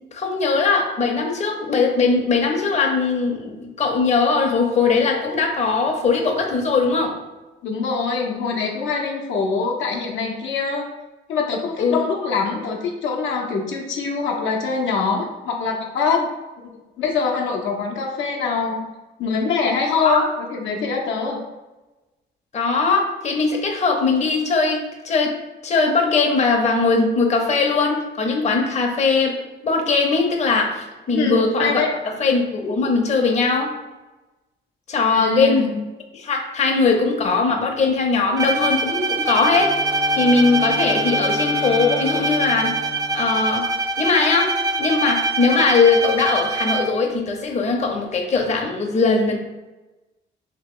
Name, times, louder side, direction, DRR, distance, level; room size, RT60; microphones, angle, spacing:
voice 1, 0.1-7.2 11.8-12.0 20.0-20.3 22.5-29.4 29.6-33.7 34.9-35.7 36.1-39.8 40.1-42.7 43.1-43.7 44.0-49.4, left 4 dB, 35° left, 2 dB, 0.7 m, -20 dB
voice 2, 7.6-10.9 11.3-16.3 17.0-18.9 19.2-21.4 31.1-31.9 35.1-35.8, left 4 dB, 75° left, 0 dB, 0.7 m, -23 dB
Bowed string instrument, 38.4-47.1, right 2 dB, 20° right, 0.4 m, -24 dB
Wind instrument woodwind instrument, 39.3-43.4, left 3 dB, 85° right, 1.3 m, -32 dB
2.9 x 2.9 x 3.7 m, 1.1 s
cardioid pair, 90°, 20 cm